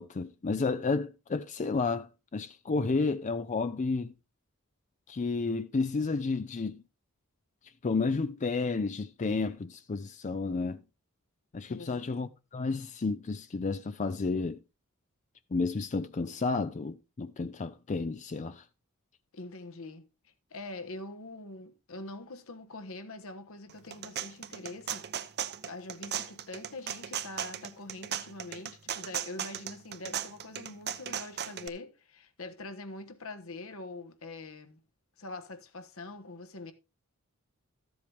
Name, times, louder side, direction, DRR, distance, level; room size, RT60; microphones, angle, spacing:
voice 1, 0.0-4.1 5.1-6.8 7.8-10.8 11.5-14.6 15.5-18.6, left 4 dB, 35° left, 0.4 m, -31 dB
voice 2, 11.7-12.0 19.3-25.1 25.6-34.8 35.2-36.7, left 2 dB, 70° left, 1.3 m, -44 dB
sound 1, 23.7-31.7, right 9 dB, 50° right, 0.7 m, -37 dB
13.5 x 7.8 x 3.4 m
head